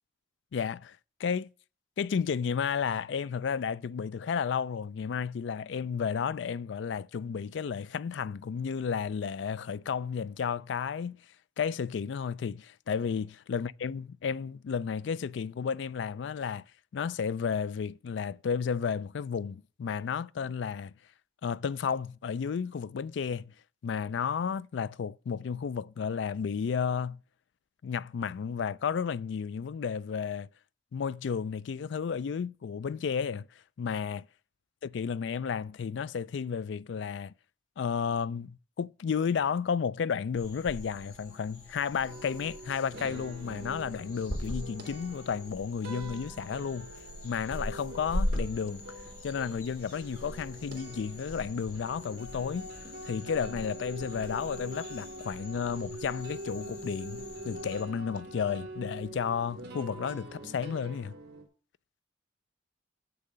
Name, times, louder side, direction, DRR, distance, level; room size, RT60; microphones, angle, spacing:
voice 1, 0.5-1.5 2.0-11.2 11.6-16.6 16.9-20.9 21.4-23.5 23.8-27.2 27.8-30.5 30.9-33.5 33.8-34.3 34.9-37.3 37.8-46.9 47.2-48.8 49.2-52.7 53.0-61.1, left 6 dB, 70° left, 0.3 m, -32 dB
sound 1, 40.4-57.8, left 1 dB, 50° left, 5.0 m, -41 dB
sound 2, 42.1-61.4, right 1 dB, 55° right, 2.3 m, -45 dB
7.4 x 6.8 x 6.7 m
head